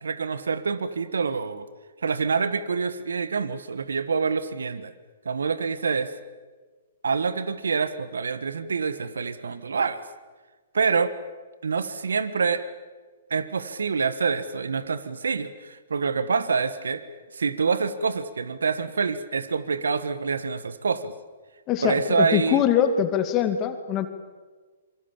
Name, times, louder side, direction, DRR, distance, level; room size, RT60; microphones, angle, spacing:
voice 1, 0.0-1.7 2.0-4.9 5.2-6.1 7.0-10.0 10.7-11.1 11.6-12.6 13.3-17.0 17.3-21.1 21.8-22.6, right 5 dB, 80° right, 14 dB, 1.6 m, -26 dB
voice 2, 21.7-24.1, left 9 dB, 30° left, 8 dB, 2.5 m, -23 dB
27.0 x 24.5 x 7.4 m, 1.4 s
hypercardioid pair, 125°, 0 cm